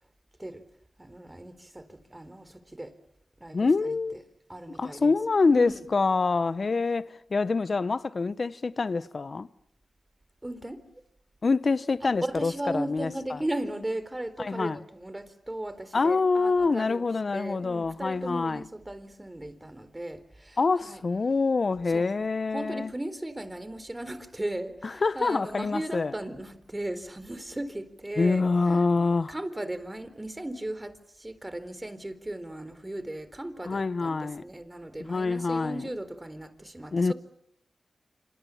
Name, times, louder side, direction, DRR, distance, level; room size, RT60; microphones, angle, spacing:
voice 1, 1.0-2.9 3.4-4.2 4.5-5.1 5.5-5.8 10.4-10.8 12.0-21.0 21.9-22.1 22.5-28.9 29.3-37.1, right 1 dB, 20° right, 4.1 m, -37 dB
voice 2, 3.5-4.2 4.7-9.5 11.4-13.4 14.4-14.8 15.9-18.6 20.6-22.9 25.0-26.1 28.2-29.3 33.7-34.4 35.0-35.9 36.9-37.1, left 4 dB, 55° left, 1.0 m, -26 dB
27.5 x 26.5 x 7.3 m
cardioid pair, 40°, 0 cm